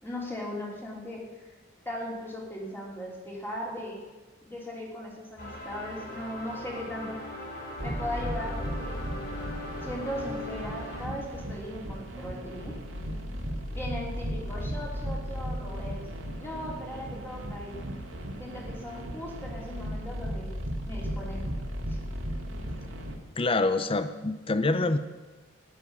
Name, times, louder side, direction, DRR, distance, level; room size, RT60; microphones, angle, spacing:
voice 1, 0.0-1.5 1.8-4.0 4.4-7.2 7.8-8.9 9.8-12.8 13.7-16.0 16.4-17.8 18.4-20.5 20.8-21.4 21.9-22.0, left 1 dB, 10° left, -3 dB, 3.1 m, -38 dB
sound 1, 5.4-11.1, left 1 dB, 55° left, 3.3 m, -40 dB
sound 2, 7.8-23.1, equal, 80° right, 2.1 m, -36 dB
voice 2, 23.4-25.0, left 2 dB, 25° left, 11 dB, 0.6 m, -26 dB
15.0 x 10.5 x 5.4 m, 1.2 s
head